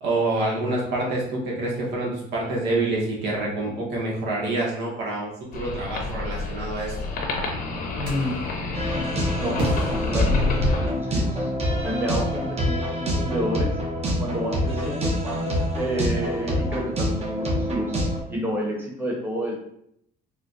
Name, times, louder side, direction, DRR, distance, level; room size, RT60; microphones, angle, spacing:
voice 1, 0.0-7.1, right 2 dB, 85° right, -3 dB, 1.0 m, -27 dB
sound 1, 5.5-10.9, left 3 dB, 55° left, 0.7 m, -28 dB
voice 2, 7.9-8.4 9.4-9.6 9.9-11.5 11.8-13.7 14.2-18.0 18.3-19.6, equal, 10° right, -2 dB, 1.0 m, -30 dB
sound 2, 8.0-8.5 9.6-11.1, right 2 dB, 65° right, 1.3 m, -33 dB
sound 3, 8.7-18.2, equal, 40° right, 0.8 m, -26 dB
4.2 x 2.2 x 2.5 m, 0.71 s
cardioid pair, 110°, 17 cm